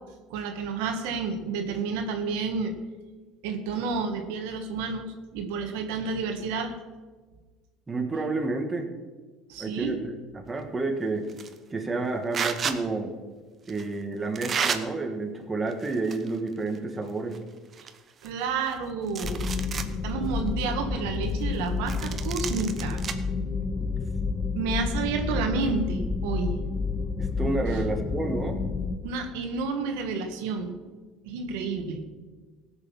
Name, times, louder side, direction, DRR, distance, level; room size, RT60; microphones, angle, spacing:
voice 1, 0.3-2.7 3.4-6.7 9.5-10.0 18.2-19.5 19.9-23.0 24.5-26.5 27.7-27.8 29.0-30.8 31.2-32.0, right 4 dB, 85° right, 5 dB, 1.5 m, -30 dB
voice 2, 7.9-8.9 9.6-11.3 11.7-13.1 13.7-17.4 23.8-23.9 27.2-28.6, right 3 dB, 20° right, 3 dB, 1.8 m, -30 dB
sound 1, 11.3-11.6 12.3-12.8 13.7-13.8 14.3-14.8 15.7-16.4 16.7-16.8 17.3-17.4 17.7-18.7 19.1-19.9 20.4-20.5 21.9-23.1, right 6 dB, 35° right, 1.0 m, -31 dB
sound 2, 19.2-29.0, left 4 dB, 15° left, 0.9 m, -30 dB
16.5 x 6.7 x 5.7 m, 1.4 s
supercardioid pair, 100°, 0 cm